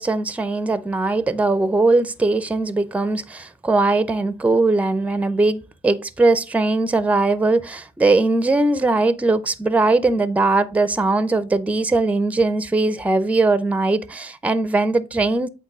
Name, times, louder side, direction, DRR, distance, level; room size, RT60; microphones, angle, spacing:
voice 1, 0.0-15.5, right 2 dB, 10° right, 0.6 m, -20 dB
8.2 x 3.7 x 4.7 m
cardioid pair, 110°, 17 cm